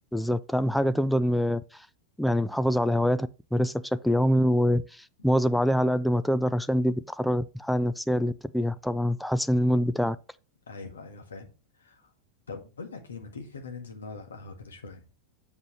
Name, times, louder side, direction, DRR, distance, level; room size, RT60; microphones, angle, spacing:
voice 1, 0.1-1.9 2.2-10.2, equal, ahead, 0.4 m, -25 dB
voice 2, 10.7-12.1 12.5-15.1, left 4 dB, 70° left, 1.6 m, -42 dB
7.3 x 6.3 x 3.0 m
figure-of-eight pair, 90°, 0 cm